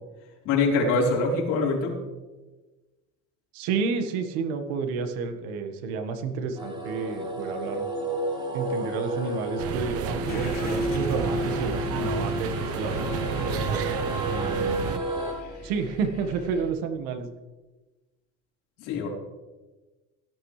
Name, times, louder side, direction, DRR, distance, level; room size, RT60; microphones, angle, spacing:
voice 1, 0.4-1.9 18.8-19.1, left 3 dB, 70° left, -2 dB, 4.2 m, -24 dB
voice 2, 3.5-7.8 8.5-13.6 14.3-15.0 15.6-17.3, right 5 dB, 90° right, 7 dB, 1.6 m, -31 dB
sound 1, 6.6-15.3, right 1 dB, 15° right, 4.0 m, -31 dB
sound 2, 9.6-15.0, right 8 dB, 50° right, 0.9 m, -31 dB
Car / Engine starting, 10.3-16.7, left 3 dB, 30° left, 3.7 m, -40 dB
17.0 x 12.0 x 3.3 m, 1.2 s
cardioid pair, 135°, 32 cm